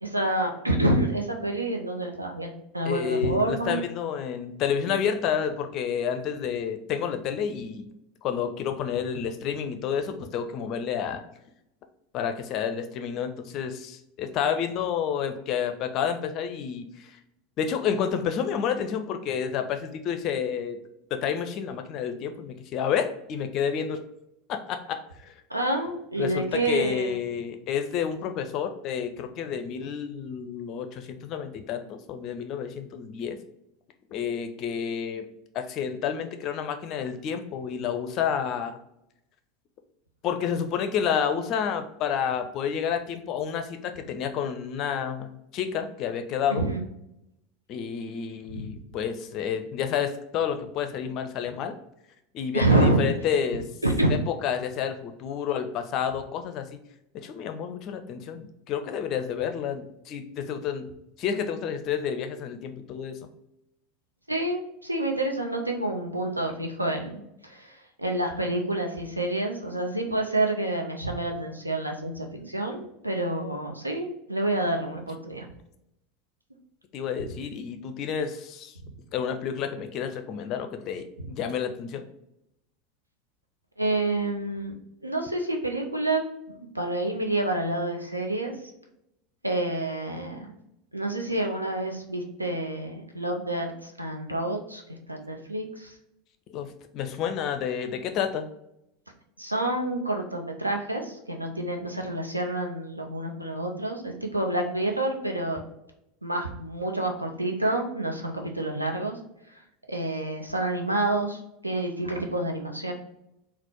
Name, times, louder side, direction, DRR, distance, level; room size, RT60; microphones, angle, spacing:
voice 1, 0.0-3.8 25.5-27.2 46.5-46.9 48.5-48.7 52.5-53.0 53.8-54.1 64.3-75.5 77.2-77.3 78.8-78.9 81.2-81.3 83.8-84.7 85.0-86.2 86.5-88.5 89.4-90.5 90.9-95.9 99.4-105.6 106.2-109.2 109.9-112.9, right 1 dB, 85° right, 2 dB, 0.6 m, -28 dB
voice 2, 2.9-7.9 8.2-11.2 12.1-17.2 17.6-20.8 21.1-24.0 24.5-25.3 26.2-33.4 34.1-35.2 35.5-38.8 40.2-46.7 47.7-51.8 52.3-53.6 54.4-56.7 57.1-60.8 61.2-63.2 76.9-78.7 79.1-82.0 96.5-98.5, left 7 dB, 40° left, 7 dB, 0.5 m, -30 dB
4.1 x 2.0 x 4.4 m, 0.82 s
figure-of-eight pair, 80°, 0 cm